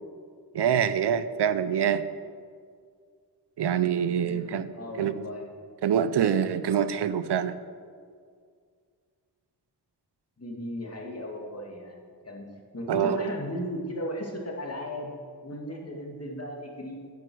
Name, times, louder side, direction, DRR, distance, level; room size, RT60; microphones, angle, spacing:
voice 1, 0.5-2.1 3.6-4.7 5.0-5.1 5.8-7.6 12.9-13.2, right 8 dB, 85° right, 14 dB, 0.6 m, -25 dB
voice 2, 4.2-5.5 10.4-12.5 12.7-15.1 15.4-17.0, left 1 dB, 40° left, 0 dB, 2.3 m, -36 dB
11.0 x 9.6 x 6.2 m, 2.1 s
wide cardioid pair, 90°, 40 cm